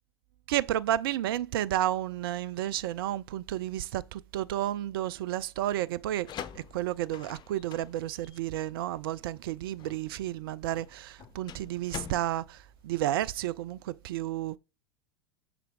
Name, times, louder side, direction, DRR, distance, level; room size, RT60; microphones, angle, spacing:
voice 1, 0.5-6.3 6.7-12.6 12.8-14.6, right 13 dB, 65° right, 0.4 m, -31 dB
sound 1, 6.0-13.6, left 8 dB, 35° left, 0.8 m, -46 dB
6.8 x 4.4 x 3.8 m
figure-of-eight pair, 80°, 13 cm